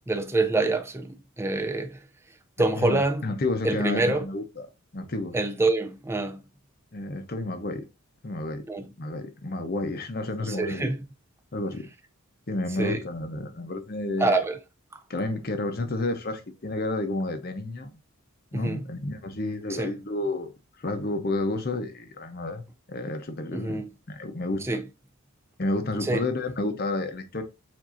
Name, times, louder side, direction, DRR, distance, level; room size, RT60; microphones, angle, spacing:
voice 1, 0.1-2.0 2.6-3.3 3.6-4.3 5.3-6.4 8.7-8.8 10.4-11.0 12.8-13.0 14.2-14.6 18.5-18.8 19.7-19.9 23.5-23.9 24.6-24.8 26.0-26.2, right 2 dB, 10° right, 0.4 m, -26 dB
voice 2, 2.7-4.7 4.9-5.3 6.9-7.9 8.2-8.6 9.0-10.9 11.5-11.9 12.5-14.4 15.1-17.9 18.5-20.5 20.8-24.6 25.6-27.4, left 2 dB, 45° left, 0.7 m, -30 dB
7.3 x 2.7 x 2.5 m
head